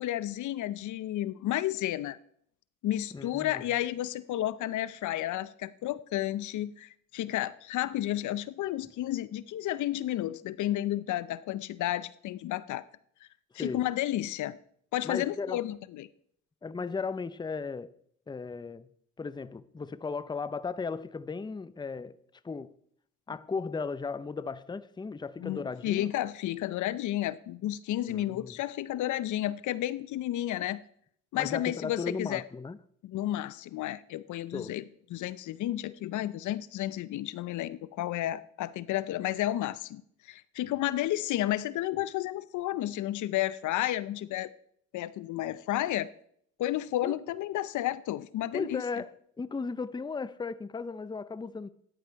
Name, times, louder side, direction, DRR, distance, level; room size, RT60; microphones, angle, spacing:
voice 1, 0.0-2.2 2.8-12.8 13.5-14.6 14.9-16.1 25.4-30.8 31.3-32.4 33.0-34.8 35.1-40.0 40.3-44.5 44.9-46.1 46.6-48.8, left 14 dB, 75° left, 0.6 m, -32 dB
voice 2, 3.1-3.6 13.5-13.8 15.0-15.6 16.6-17.9 18.3-18.9 19.2-22.2 22.4-22.7 23.3-26.1 28.1-28.6 31.3-32.8 34.5-34.7 47.0-47.2 48.5-51.7, left 4 dB, 15° left, 0.6 m, -36 dB
14.0 x 10.0 x 4.6 m
cardioid pair, 90°, 30 cm